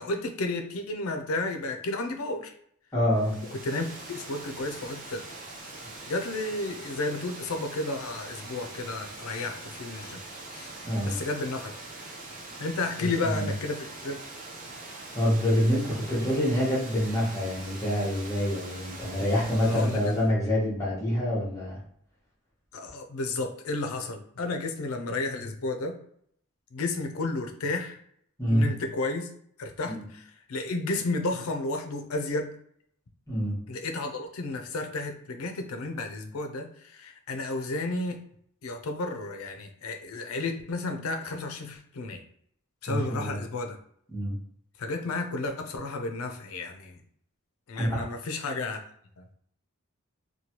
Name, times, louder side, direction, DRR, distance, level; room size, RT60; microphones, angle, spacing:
voice 1, 0.0-2.5 3.5-5.2 6.1-10.2 10.5-10.7 11.1-11.7 12.6-14.2 19.7-20.1 22.7-25.9 26.7-28.0 28.5-29.3 29.6-32.5 33.7-38.2 38.6-42.2 42.8-43.8 44.8-47.0 47.7-48.8 49.2-49.3, left 2 dB, 80° left, 5 dB, 0.5 m, -32 dB
voice 2, 2.9-3.4 10.8-11.1 13.0-13.5 15.1-21.8 28.4-28.7 29.8-30.0 33.3-33.6 42.9-43.4 44.1-44.4 47.8-48.1, equal, 15° left, -7 dB, 1.1 m, -26 dB
Water, 3.1-20.3, right 2 dB, 40° right, 0.6 m, -43 dB
3.0 x 2.2 x 2.9 m, 0.67 s
head